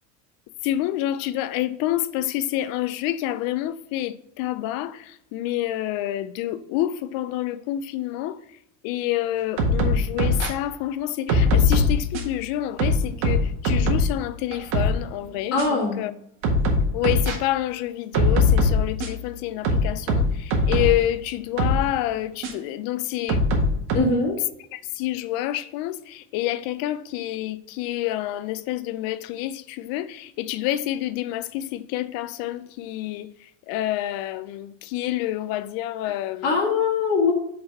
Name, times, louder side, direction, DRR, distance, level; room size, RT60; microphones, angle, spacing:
voice 1, 0.6-4.9 5.3-8.3 8.8-16.1 16.9-20.2 20.7-23.4 24.7-26.0 26.3-33.3 33.7-36.4, left 13 dB, 65° left, 0.6 m, -28 dB
sound 1, 9.6-10.5 11.3-12.4 12.8-14.1 14.5-15.0 15.6-15.7 16.4-17.4 18.1-19.2 19.6-21.0 21.6-21.8 22.4-22.5 23.3-24.0, left 2 dB, 75° right, 1.7 m, -21 dB
voice 2, 15.5-16.0 23.9-24.3 36.4-37.3, left 4 dB, 40° left, 2.1 m, -21 dB
5.5 x 4.1 x 5.3 m
cardioid pair, 145°, 37 cm